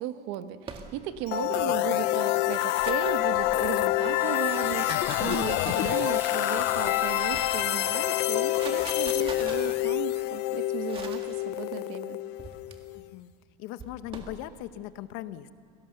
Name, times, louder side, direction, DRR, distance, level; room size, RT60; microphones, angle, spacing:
voice 1, 0.0-12.2, right 12 dB, 80° right, 10 dB, 1.2 m, -36 dB
sound 1, 0.6-1.3 2.3-3.9 4.6-6.2 6.8-7.8 8.3-9.8 10.9-11.3 12.4-12.7 13.8-14.4, right 5 dB, 25° right, 1.8 m, -42 dB
voice 2, 1.3-1.9 5.6-6.0 12.9-13.3 13.6-15.5, left 13 dB, 80° left, 13 dB, 1.0 m, -40 dB
sound 2, 1.3-13.1, left 17 dB, 55° left, 0.5 m, -27 dB
sound 3, 4.1-9.6, right 1 dB, 10° right, 3.3 m, -43 dB
28.0 x 18.0 x 6.8 m, 2.6 s
cardioid pair, 165°, 20 cm